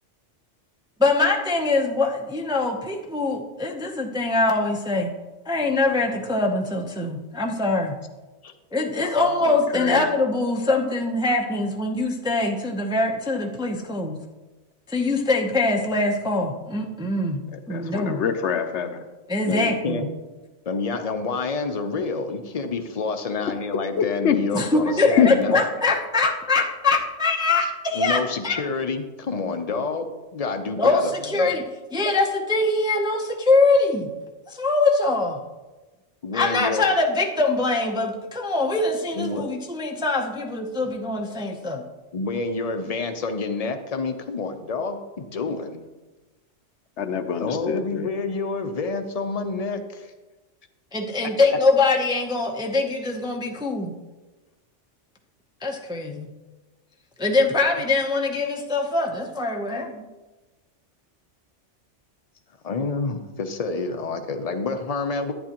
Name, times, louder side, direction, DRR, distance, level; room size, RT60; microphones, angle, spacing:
voice 1, 1.0-5.1 5.5-7.9 8.7-14.2 14.9-18.2 19.3-20.1 24.5-28.6 30.8-31.6 31.9-34.1 34.5-35.4 36.3-41.8 50.9-53.9 55.6-56.3 57.2-60.1, left 3 dB, 5° right, 1 dB, 0.5 m, -23 dB
voice 2, 9.2-10.1 17.5-19.0 23.9-24.4 25.2-25.5 47.0-48.1, left 8 dB, 70° left, 8 dB, 1.0 m, -25 dB
voice 3, 19.4-20.1 20.7-25.6 27.9-31.5 36.2-36.9 39.1-39.4 42.1-45.9 47.4-50.1 62.6-65.3, left 4 dB, 40° left, 7 dB, 0.7 m, -28 dB
11.0 x 9.2 x 2.9 m, 1.2 s
omnidirectional pair, 1.2 m